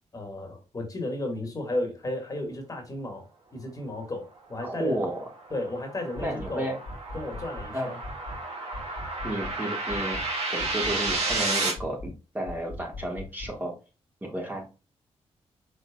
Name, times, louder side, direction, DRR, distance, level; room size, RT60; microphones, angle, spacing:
voice 1, 0.1-5.0 5.5-6.7 7.1-7.9, left 1 dB, 30° left, 1.8 m, -33 dB
voice 2, 4.6-5.3 6.2-6.8 7.7-8.0 9.2-10.2 10.5-13.7 14.2-14.7, right 1 dB, 15° right, 1.6 m, -32 dB
sound 1, 4.8-11.7, right 3 dB, 70° right, 2.1 m, -32 dB
sound 2, 6.2-6.6 6.9-7.7 8.0-8.4 8.7-9.6 9.9-10.3 10.6-11.5 11.8-12.2 12.5-13.6, left 2 dB, 85° left, 1.5 m, -40 dB
5.1 x 3.9 x 2.3 m
cardioid pair, 100°, 11 cm